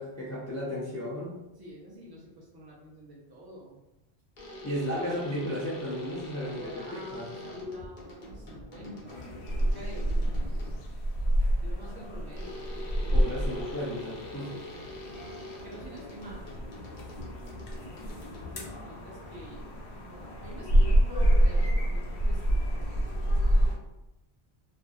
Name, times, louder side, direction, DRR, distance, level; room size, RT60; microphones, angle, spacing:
voice 1, 0.0-1.4 4.6-7.3 13.1-14.5, equal, 25° left, -7 dB, 0.4 m, -34 dB
voice 2, 1.6-3.8 6.4-9.3 9.7-10.2 11.6-13.7 14.4-15.0 15.6-16.5 18.4-23.1, equal, 25° right, -5 dB, 0.7 m, -47 dB
sound 1, 4.4-11.0 12.4-19.0, left 1 dB, 55° left, 0.7 m, -44 dB
sound 2, 9.1-23.7, right 1 dB, 90° left, 0.9 m, -28 dB
2.6 x 2.5 x 2.3 m, 0.93 s
omnidirectional pair, 1.1 m